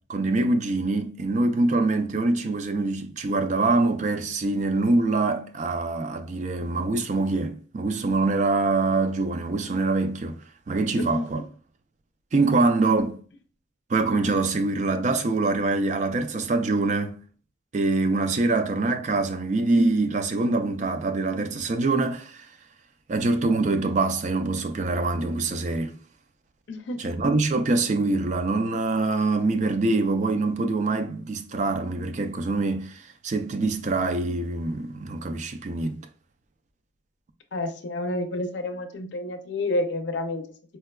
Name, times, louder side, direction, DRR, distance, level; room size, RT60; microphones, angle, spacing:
voice 1, 0.1-10.4 10.7-11.4 12.3-13.2 13.9-17.2 17.7-22.5 23.1-26.0 27.0-36.0, right 3 dB, 40° right, 0.3 m, -24 dB
voice 2, 11.0-11.3 26.7-27.0 37.5-40.4, left 2 dB, 80° left, 0.5 m, -29 dB
4.3 x 2.2 x 2.2 m
head